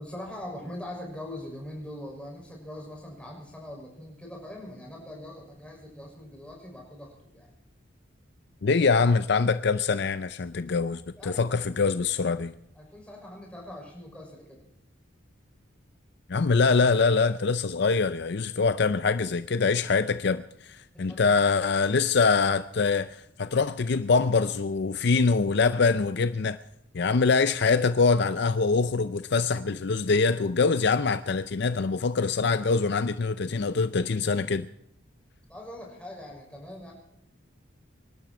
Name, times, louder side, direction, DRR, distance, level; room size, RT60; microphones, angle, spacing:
voice 1, 0.0-7.5 11.2-11.6 12.7-14.6 20.9-21.3 35.5-36.9, left 1 dB, 5° left, 6.0 m, -42 dB
voice 2, 8.6-12.5 16.3-26.6 26.9-34.7, left 4 dB, 55° left, 0.5 m, -24 dB
25.5 x 12.0 x 4.4 m
head